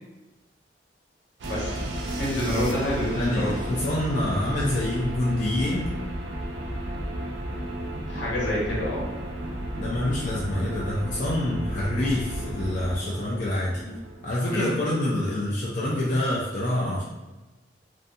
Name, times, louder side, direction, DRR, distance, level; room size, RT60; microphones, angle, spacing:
voice 1, 1.4-1.8 2.2-3.6 8.0-9.1 14.4-14.7, left 1 dB, 80° left, -6 dB, 1.0 m, -27 dB
sound 1, 1.4-15.3, right 1 dB, 70° right, 0.4 m, -33 dB
voice 2, 3.2-5.9 9.8-13.8 14.2-17.0, left 1 dB, 45° left, -6 dB, 0.4 m, -26 dB
2.5 x 2.2 x 2.6 m, 1.1 s
head